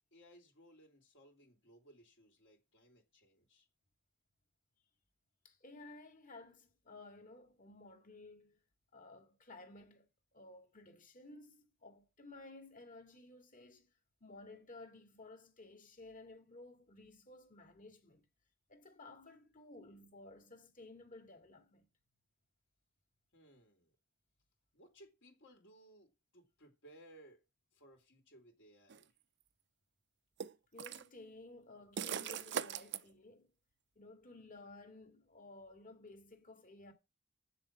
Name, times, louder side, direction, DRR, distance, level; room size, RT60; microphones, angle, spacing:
voice 1, 0.1-3.6 23.3-23.9 24.7-26.1 26.3-27.4 27.7-29.1, right 1 dB, 65° left, 3.1 m, -62 dB
voice 2, 5.4-8.6 8.9-13.9 14.2-18.3 18.7-21.8 30.7-33.5 34.0-36.9, left 2 dB, 45° left, 2.2 m, -55 dB
sound 1, 28.9-29.0 30.4-31.1 32.0-33.0, right 8 dB, 65° right, 0.6 m, -40 dB
7.7 x 6.9 x 7.4 m
head